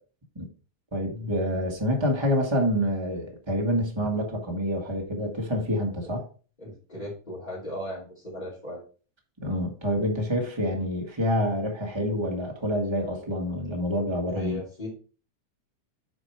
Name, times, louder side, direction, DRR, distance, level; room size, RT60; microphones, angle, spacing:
voice 1, 0.9-6.2 9.4-14.6, equal, 20° right, 1 dB, 0.6 m, -27 dB
voice 2, 6.6-8.8 14.3-14.9, left 1 dB, 15° left, -9 dB, 2.8 m, -37 dB
8.4 x 4.5 x 4.5 m, 0.38 s
omnidirectional pair, 3.5 m